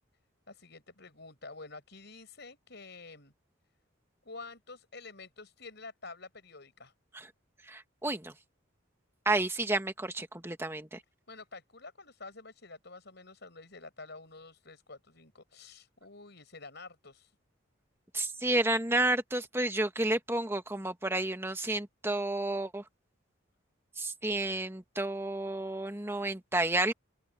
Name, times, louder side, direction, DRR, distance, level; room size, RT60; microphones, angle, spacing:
voice 1, 0.5-3.3 4.2-6.9 11.3-17.3, left 3 dB, 55° left, 6.9 m, -49 dB
voice 2, 7.7-8.3 9.2-11.0 18.1-22.8 24.0-26.9, right 2 dB, 10° right, 1.7 m, -31 dB
open air
head